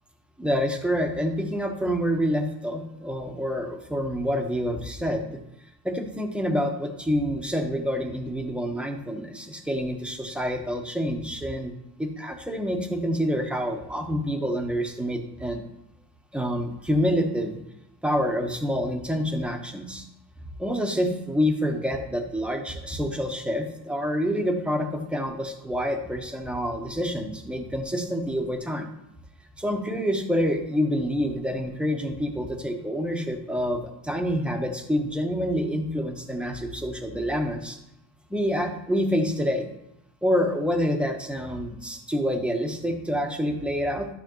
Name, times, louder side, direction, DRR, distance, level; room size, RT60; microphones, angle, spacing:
voice 1, 0.4-5.3 5.8-11.7 12.0-15.6 16.3-17.6 18.0-20.0 20.6-28.9 29.6-37.8 38.3-39.7 40.2-44.1, equal, 5° right, 3 dB, 1.3 m, -27 dB
11.5 x 6.3 x 3.2 m, 0.84 s
supercardioid pair, 95°, 41 cm